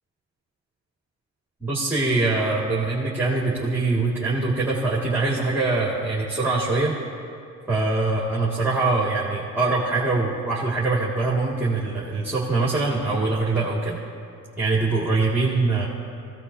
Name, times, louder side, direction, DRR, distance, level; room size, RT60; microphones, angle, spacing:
voice 1, 1.6-7.0 7.7-14.0 14.6-15.9, right 3 dB, 5° right, -5 dB, 2.2 m, -23 dB
22.0 x 16.5 x 2.8 m, 2.5 s
cardioid pair, 90°, 30 cm